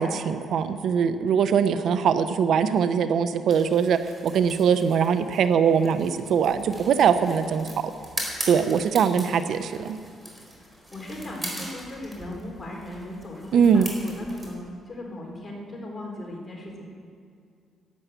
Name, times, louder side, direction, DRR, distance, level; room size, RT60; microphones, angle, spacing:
voice 1, 0.0-7.7 8.5-10.0 13.5-13.9, right 7 dB, 70° right, 11 dB, 0.7 m, -22 dB
sound 1, 3.5-14.5, equal, 10° right, 4.3 m, -40 dB
voice 2, 10.5-16.9, left 1 dB, 25° left, -1 dB, 3.8 m, -38 dB
12.0 x 10.5 x 8.2 m, 2.3 s
cardioid pair, 90°, 0 cm